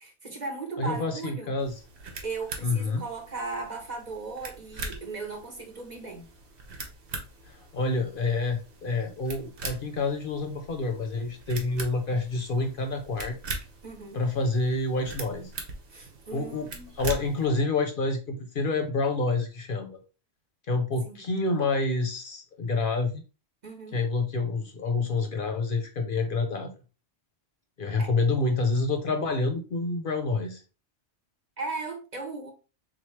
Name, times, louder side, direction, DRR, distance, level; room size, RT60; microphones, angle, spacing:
voice 1, 0.0-1.6 2.2-6.3 13.8-14.2 15.9-16.9 21.1-21.2 23.6-24.0 28.0-28.1 31.6-32.5, right 3 dB, 40° right, 1.0 m, -37 dB
voice 2, 0.8-1.7 2.6-3.0 7.4-13.4 14.1-15.5 16.3-16.7 17.0-20.0 20.7-23.2 23.9-26.7 27.8-30.6, left 3 dB, 55° left, 0.8 m, -28 dB
sound 1, 1.6-17.5, right 3 dB, 70° right, 1.2 m, -42 dB
3.9 x 3.1 x 3.1 m
omnidirectional pair, 1.2 m